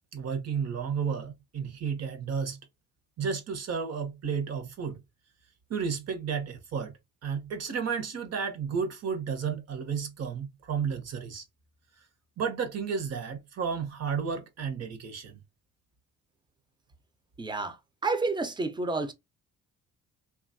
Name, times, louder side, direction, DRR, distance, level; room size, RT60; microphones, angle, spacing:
voice 1, 0.1-2.6 3.2-5.0 5.7-6.9 7.2-11.4 12.4-15.4, right 6 dB, 55° right, 0.9 m, -32 dB
voice 2, 17.4-19.1, right 3 dB, 15° right, 0.5 m, -30 dB
2.9 x 2.3 x 2.6 m
cardioid pair, 90°, 30 cm